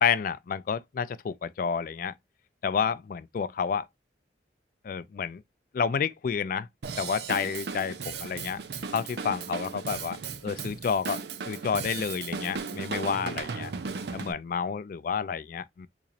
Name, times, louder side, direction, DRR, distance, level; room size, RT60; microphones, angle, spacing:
voice 1, 0.0-2.1 2.6-3.9 4.8-5.4 5.7-6.7 7.0-8.6 8.9-10.2 10.4-13.7 14.1-15.9, left 6 dB, 50° left, 0.3 m, -30 dB
Drum kit / Drum, 6.8-14.3, right 5 dB, 65° right, 0.5 m, -36 dB
4.0 x 3.0 x 2.4 m
head